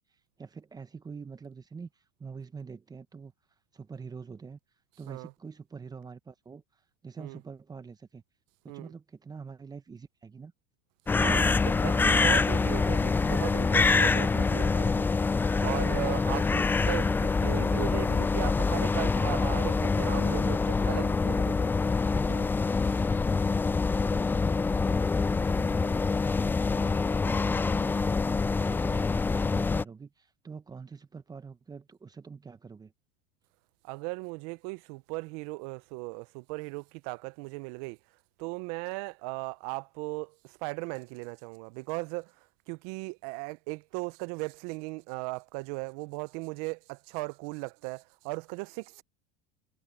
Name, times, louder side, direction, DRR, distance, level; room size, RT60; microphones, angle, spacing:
voice 1, 0.0-3.3 3.7-4.6 5.0-8.2 8.6-10.5 11.9-13.0 28.5-32.9, right 5 dB, 20° right, 1.2 m, -46 dB
sound 1, 11.1-29.8, left 4 dB, 10° left, 0.3 m, -26 dB
voice 2, 11.2-15.1 15.6-21.7 22.1-22.5 33.8-38.0 38.4-42.3 42.7-49.0, right 27 dB, 65° right, 0.8 m, -37 dB
supercardioid pair, 105°, 21 cm